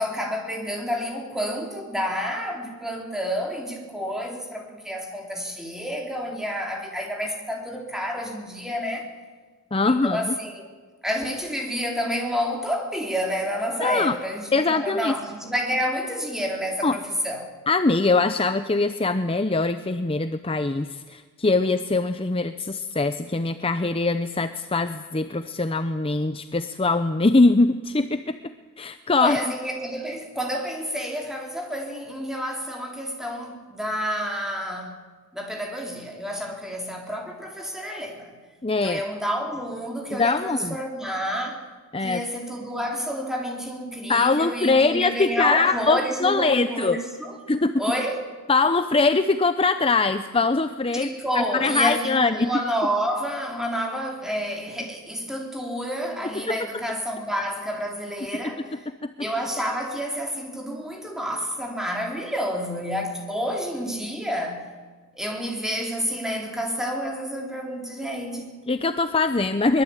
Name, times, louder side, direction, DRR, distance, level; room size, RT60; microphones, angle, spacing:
voice 1, 0.0-9.1 9.9-10.7 11.0-17.5 29.2-35.0 35.3-38.3 38.8-41.6 42.0-47.4 47.8-48.2 50.9-58.8 59.2-64.7 65.1-68.6, equal, ahead, 1 dB, 4.0 m, -29 dB
voice 2, 9.7-10.3 13.8-14.2 14.5-15.1 16.8-17.0 17.7-28.4 28.8-29.5 38.6-39.0 40.1-40.8 41.9-42.2 44.1-47.0 47.5-47.8 48.5-51.1 51.3-52.5 56.3-56.8 59.0-59.1 68.7-69.8, left 3 dB, 25° left, 10 dB, 0.7 m, -22 dB
23.5 x 22.0 x 9.1 m, 1.5 s
head